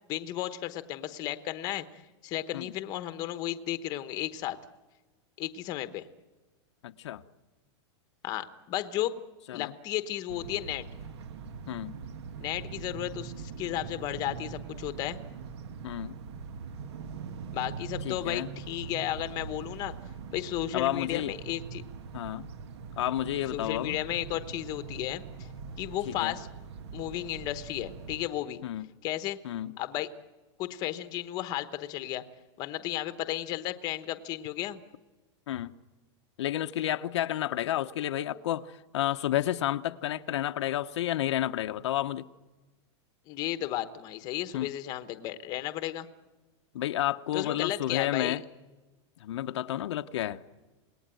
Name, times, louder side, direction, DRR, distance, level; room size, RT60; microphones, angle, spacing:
voice 1, 0.1-1.9 2.2-4.6 5.4-6.0 8.2-9.2 9.5-10.8 12.4-15.2 17.5-19.9 20.3-21.8 23.5-25.5 25.8-26.5 26.9-28.6 29.0-29.4 29.8-30.1 30.6-32.2 32.6-34.8 43.3-46.1 47.3-48.4, left 14 dB, 25° left, 1.1 m, -34 dB
voice 2, 6.8-7.2 9.5-9.7 11.7-12.0 15.8-16.2 18.0-18.5 20.7-21.3 22.1-22.5 23.0-24.0 26.1-26.3 28.6-28.9 29.4-29.8 35.5-35.7 36.4-42.3 44.5-44.7 46.7-48.4 49.2-50.4, left 13 dB, 70° left, 1.0 m, -31 dB
sound 1, 10.3-28.3, right 5 dB, 65° right, 1.5 m, -42 dB
28.0 x 19.5 x 9.1 m
supercardioid pair, 175°, 15 cm